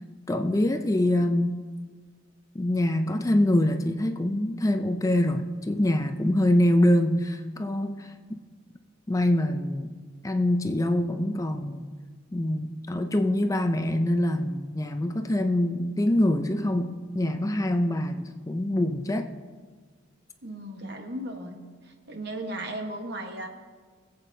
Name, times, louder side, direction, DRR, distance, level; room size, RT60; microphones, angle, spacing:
voice 1, 0.3-1.6 2.5-8.4 9.1-9.9 10.2-11.8 12.3-19.3, left 1 dB, 15° left, 7 dB, 0.4 m, -25 dB
voice 2, 20.4-21.6 22.1-23.5, right 1 dB, 55° right, 4 dB, 1.2 m, -35 dB
21.5 x 8.1 x 2.7 m, 1.5 s
head